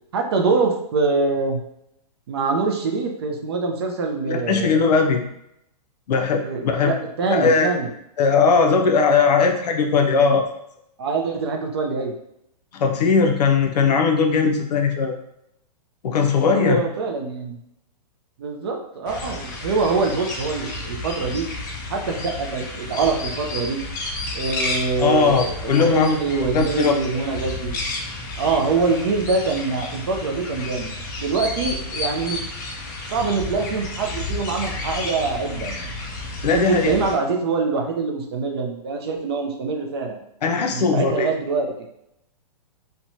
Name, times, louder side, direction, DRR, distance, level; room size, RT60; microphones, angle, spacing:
voice 1, 0.1-1.6 2.3-4.8 6.4-7.9 10.1-10.4 11.0-12.1 16.4-17.6 18.4-21.5 21.9-23.8 24.3-27.8 28.4-30.9 31.2-32.5 33.1-35.9 36.5-40.2 40.7-41.7, right 4 dB, 40° right, 2 dB, 0.4 m, -24 dB
voice 2, 4.3-5.2 6.1-6.9 7.3-7.7 8.2-10.4 12.7-15.2 16.0-16.8 25.0-26.2 26.5-26.9 36.4-36.9 40.4-41.3, left 5 dB, 75° left, 4 dB, 0.5 m, -19 dB
sound 1, 19.1-37.1, left 2 dB, 30° left, 0.4 m, -31 dB
2.9 x 2.1 x 2.6 m, 0.79 s
hypercardioid pair, 165°, 21 cm